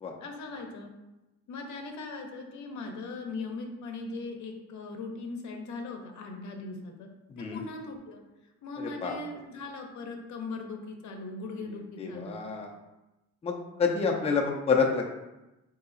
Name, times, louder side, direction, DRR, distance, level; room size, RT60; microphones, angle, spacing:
voice 1, 0.2-0.9 1.5-7.1 7.4-8.2 8.6-12.4, left 3 dB, 70° left, 3 dB, 0.7 m, -39 dB
voice 2, 8.8-9.2 12.0-12.7 13.4-15.0, left 5 dB, 20° left, 0 dB, 0.5 m, -28 dB
3.8 x 2.8 x 2.5 m, 1.0 s
cardioid pair, 90°, 30 cm